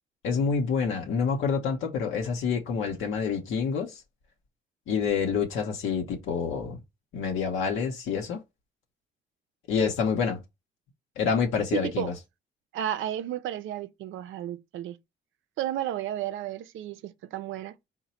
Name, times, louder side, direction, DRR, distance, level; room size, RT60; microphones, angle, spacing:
voice 1, 0.2-4.0 4.9-6.8 7.1-8.4 9.7-10.4 11.2-12.1, left 6 dB, 80° left, 0.8 m, -27 dB
voice 2, 11.7-12.1 12.7-15.0 15.6-17.8, right 12 dB, 80° right, 0.5 m, -32 dB
3.9 x 2.1 x 4.2 m
cardioid pair, 90°, 20 cm